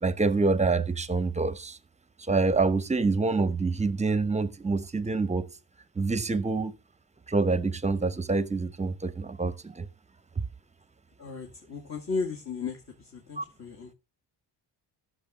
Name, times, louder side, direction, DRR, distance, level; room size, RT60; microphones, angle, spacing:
voice 1, 0.0-1.8 2.3-5.5 6.0-6.7 7.3-9.9 13.4-13.5, right 3 dB, 15° right, 0.9 m, -26 dB
voice 2, 11.2-13.9, left 4 dB, 40° left, 2.4 m, -35 dB
14.5 x 7.0 x 3.7 m
cardioid pair, 110°, 43 cm